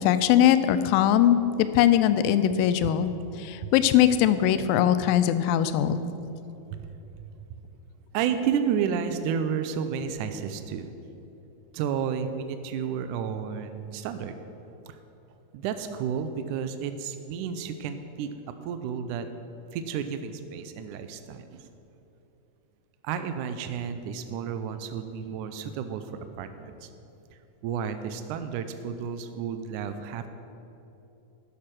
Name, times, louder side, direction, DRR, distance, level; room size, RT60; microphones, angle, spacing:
voice 1, 0.0-3.1 3.4-6.1, left 10 dB, 90° left, 12 dB, 2.3 m, -21 dB
voice 2, 8.1-10.9 11.7-14.4 14.9-15.0 15.5-18.3 18.6-19.3 19.7-21.7 23.0-26.9 27.6-30.3, right 7 dB, 80° right, 9 dB, 1.8 m, -31 dB
12.0 x 6.6 x 6.2 m, 2.9 s
omnidirectional pair, 4.0 m